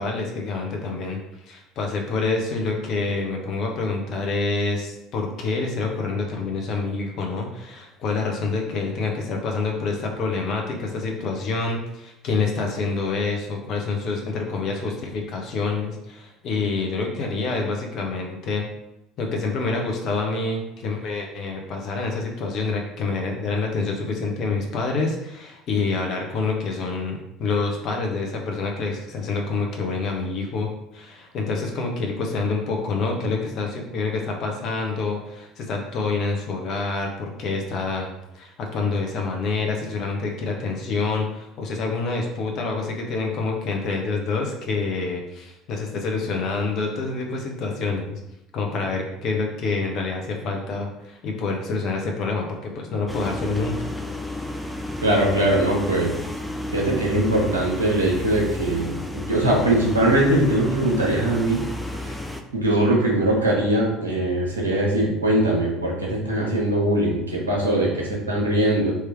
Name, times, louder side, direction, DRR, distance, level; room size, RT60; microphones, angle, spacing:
voice 1, 0.0-18.6 19.2-38.1 38.3-48.2 48.5-53.9, left 3 dB, 50° left, 1 dB, 1.1 m, -27 dB
sound 1, 53.1-62.4, left 1 dB, ahead, 0.5 m, -32 dB
voice 2, 55.0-56.1 56.7-61.6 62.0-62.2 62.5-69.0, right 1 dB, 85° right, -3 dB, 1.2 m, -21 dB
3.6 x 3.2 x 4.6 m, 0.85 s
figure-of-eight pair, 65°, 0 cm